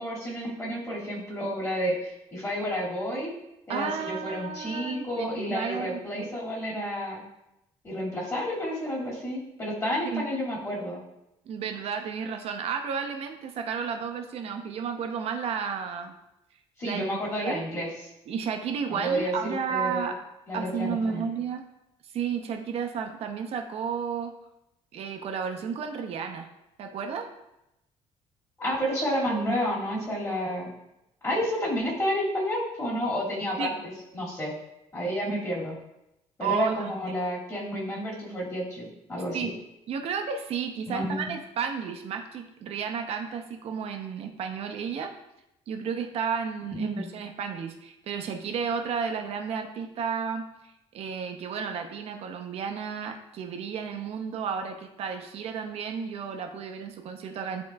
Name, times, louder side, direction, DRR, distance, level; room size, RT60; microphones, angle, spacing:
voice 1, 0.0-3.3 3.7-7.2 7.8-11.0 16.8-17.9 18.9-20.1 20.5-21.2 28.6-30.7 31.2-33.7 34.1-34.5 34.9-35.8 36.4-39.5 40.9-41.3 46.7-47.1, equal, 25° left, -5 dB, 2.3 m, -30 dB
voice 2, 3.7-6.3 10.0-10.3 11.5-16.1 16.8-17.7 18.3-20.2 20.5-21.6 22.1-24.3 24.9-26.5 26.8-27.3 33.6-33.7 36.4-36.9 39.3-39.5 39.9-45.1 45.7-50.5 50.9-57.6, right 6 dB, 60° right, 5 dB, 0.8 m, -32 dB
10.5 x 3.8 x 2.4 m, 0.87 s
cardioid pair, 140°, 12 cm